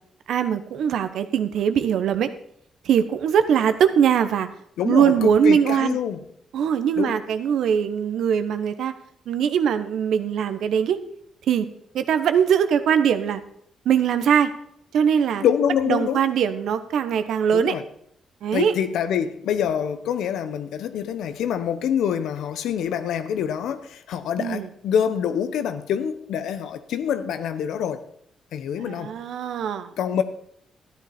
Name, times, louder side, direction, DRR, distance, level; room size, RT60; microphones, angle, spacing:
voice 1, 0.3-2.3 2.8-4.5 4.8-6.0 6.5-8.9 9.3-11.0 11.5-11.7 11.9-13.4 13.8-14.5 14.9-15.4 15.9-17.7 18.4-18.7 24.4-24.7 28.8-29.9, right 8 dB, 75° right, 0.9 m, -21 dB
voice 2, 4.8-6.2 7.0-7.2 15.4-16.2 17.5-17.8 18.5-28.0 28.5-29.1 30.0-30.2, left 8 dB, 85° left, 0.9 m, -25 dB
13.0 x 10.0 x 4.3 m
cardioid pair, 120°, 0 cm